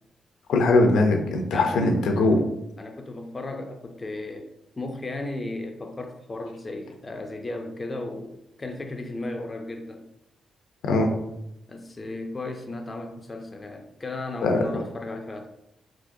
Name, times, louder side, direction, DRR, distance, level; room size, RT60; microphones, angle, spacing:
voice 1, 0.5-2.4 10.8-11.1 14.4-14.8, left 2 dB, 90° left, 3 dB, 0.5 m, -21 dB
voice 2, 1.5-2.4 2.8-4.5 4.8-10.0 11.7-15.5, left 2 dB, 25° left, 4 dB, 0.4 m, -35 dB
3.6 x 2.9 x 2.6 m, 0.82 s
cardioid pair, 115°, 0 cm